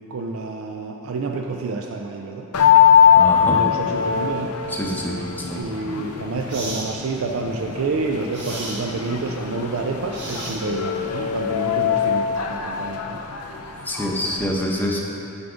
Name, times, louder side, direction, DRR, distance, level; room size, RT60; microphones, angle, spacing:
voice 1, 0.0-2.5 3.4-4.5 5.5-13.2, right 3 dB, 70° right, 2 dB, 0.4 m, -28 dB
sound 1, 2.5-14.5, left 8 dB, 90° left, 0.5 m, -21 dB
voice 2, 3.2-3.6 4.7-5.6 13.8-15.0, equal, 10° left, -2 dB, 0.7 m, -26 dB
sound 2, 5.6-5.8 6.5-6.9 8.3-8.8 10.1-10.9, right 2 dB, 55° right, 1.5 m, -34 dB
9.7 x 3.5 x 5.1 m, 2.8 s
head